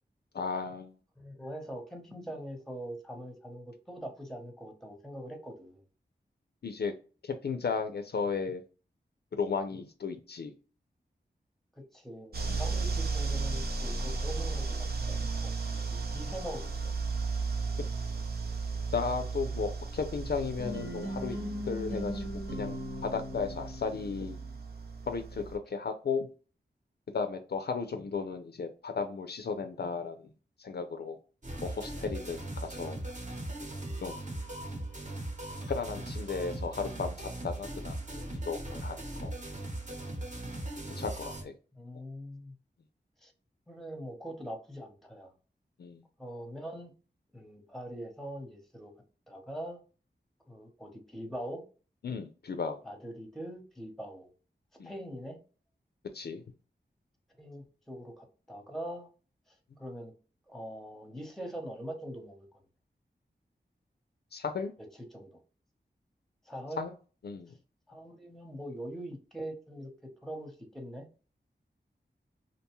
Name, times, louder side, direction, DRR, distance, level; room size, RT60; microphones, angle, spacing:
voice 1, 0.3-1.0 6.6-6.9 7.2-8.6 9.3-10.5 12.5-12.6 18.9-21.4 21.7-24.4 25.1-26.3 27.1-30.3 30.6-31.2 31.6-33.0 34.0-34.2 35.7-39.3 40.9-41.5 45.8-46.0 52.0-52.8 54.8-54.9 56.1-56.4 64.3-64.7 66.8-66.9 67.2-67.5, left 5 dB, 65° left, 7 dB, 0.4 m, -35 dB
voice 2, 1.2-5.8 11.8-15.7 16.1-16.9 41.8-42.6 43.2-43.3 43.7-45.3 46.2-46.9 47.3-48.9 49.3-49.8 50.5-51.6 52.8-54.3 54.8-55.4 57.4-59.1 59.8-60.1 60.5-62.5 65.1-65.4 66.5-66.8 67.9-69.9 70.2-71.1, right 1 dB, ahead, 4 dB, 0.8 m, -42 dB
sound 1, 12.3-25.6, right 4 dB, 60° right, 0.6 m, -35 dB
sound 2, 20.6-24.6, equal, 90° right, 0.9 m, -39 dB
sound 3, 31.4-41.4, right 1 dB, 45° right, 0.9 m, -39 dB
2.5 x 2.2 x 2.9 m, 0.37 s
wide cardioid pair, 50°, 18 cm